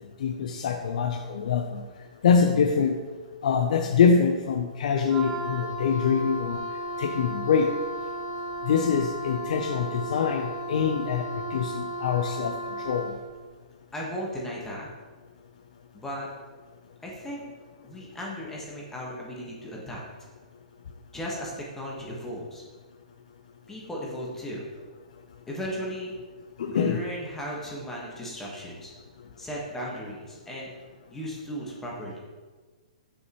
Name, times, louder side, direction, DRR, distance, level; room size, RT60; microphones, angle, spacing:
voice 1, 0.2-1.8 2.2-3.0 3.4-6.6 7.0-7.7 8.7-11.2 11.5-12.5 12.8-13.1 26.6-27.0, left 6 dB, 65° left, 4 dB, 0.5 m, -24 dB
Wind instrument woodwind instrument, 5.1-13.2, right 1 dB, 30° right, 1.2 m, -35 dB
voice 2, 13.9-14.9 15.9-16.3 17.0-17.4 17.8-20.0 21.1-22.6 23.7-24.7 25.5-26.1 26.7-28.9 29.4-30.7 31.1-32.2, equal, 10° left, -4 dB, 1.3 m, -36 dB
6.4 x 5.5 x 3.0 m, 1.4 s
hypercardioid pair, 145°, 4 cm